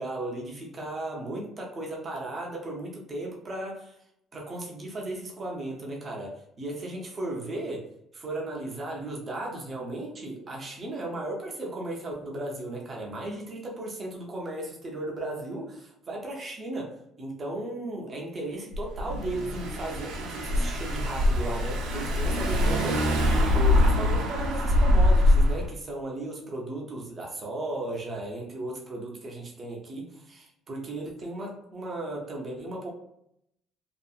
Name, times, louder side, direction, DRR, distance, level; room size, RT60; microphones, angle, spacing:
voice 1, 0.0-3.9 4.3-23.2 23.5-32.9, right 1 dB, 25° right, -1 dB, 0.6 m, -36 dB
Car / Engine, 18.7-25.7, left 1 dB, 90° right, 0.6 m, -23 dB
2.7 x 2.4 x 2.3 m, 0.74 s
cardioid pair, 175°, 0 cm